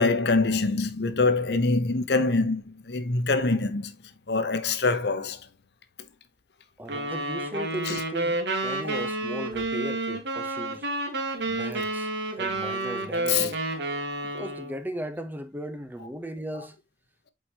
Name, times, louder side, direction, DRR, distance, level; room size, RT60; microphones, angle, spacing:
voice 1, 0.0-3.9 4.3-5.4 7.9-8.0 13.3-13.5, left 3 dB, 65° left, 0.8 m, -24 dB
voice 2, 6.8-10.9 11.4-13.6 14.2-16.8, equal, 10° right, 0.8 m, -37 dB
sound 1, 6.9-14.8, right 2 dB, 75° right, 1.6 m, -30 dB
7.8 x 4.7 x 2.8 m
head